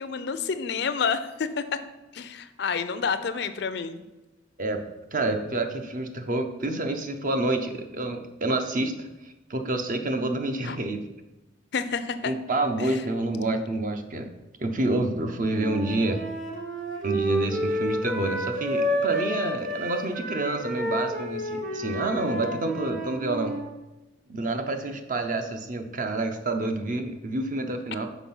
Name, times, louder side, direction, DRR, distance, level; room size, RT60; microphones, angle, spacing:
voice 1, 0.0-1.8 2.1-4.0 10.6-10.8 11.7-12.3 12.8-13.0, left 5 dB, 55° left, 11 dB, 0.4 m, -29 dB
voice 2, 5.1-11.0 12.2-14.3 14.6-16.2 17.0-23.6 24.3-28.1, right 2 dB, 40° right, 6 dB, 0.6 m, -28 dB
Wind instrument woodwind instrument, 15.5-23.6, equal, 60° right, 1.4 m, -30 dB
6.0 x 4.6 x 5.5 m, 1.1 s
head